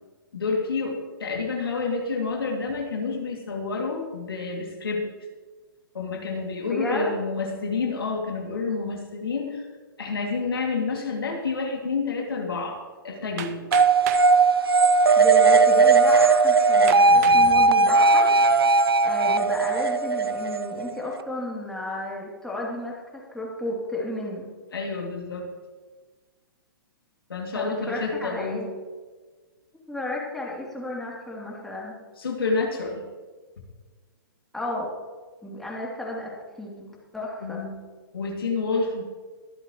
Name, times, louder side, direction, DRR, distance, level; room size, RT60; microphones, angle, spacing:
voice 1, 0.3-5.1 5.9-9.7 10.0-13.6 17.1-17.6 24.7-25.5 27.3-28.7 32.2-33.0 37.4-37.8 38.1-39.0, left 4 dB, 75° left, 1 dB, 2.5 m, -29 dB
voice 2, 6.7-7.1 15.2-24.5 27.5-28.7 29.9-32.0 34.5-34.9 35.4-37.6, left 1 dB, ahead, -5 dB, 2.9 m, -33 dB
Hammer, 13.4-14.3 15.2-15.3 15.9-16.0 16.9-17.5 18.1-18.5, right 10 dB, 45° right, 0.8 m, -35 dB
sound 1, 13.7-21.2, right 3 dB, 85° right, 0.7 m, -18 dB
23.5 x 8.0 x 3.1 m, 1.4 s
hypercardioid pair, 125°, 12 cm